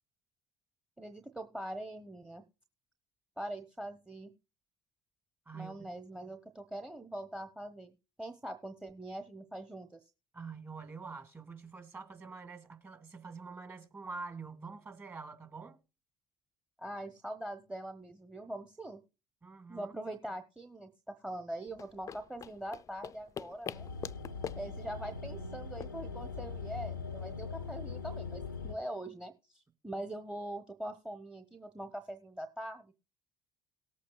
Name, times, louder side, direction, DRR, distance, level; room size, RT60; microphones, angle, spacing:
voice 1, 1.0-2.4 3.4-4.3 5.5-10.1 16.8-19.0 19.7-23.9 24.6-32.9, right 1 dB, 5° right, 1.0 m, -43 dB
voice 2, 5.5-5.9 10.3-15.8 19.4-19.9, right 4 dB, 25° right, 1.9 m, -46 dB
sound 1, 21.7-26.9, left 8 dB, 30° left, 0.5 m, -46 dB
sound 2, 23.7-28.7, left 5 dB, 85° left, 0.5 m, -41 dB
18.5 x 8.5 x 2.3 m
figure-of-eight pair, 60°, 10 cm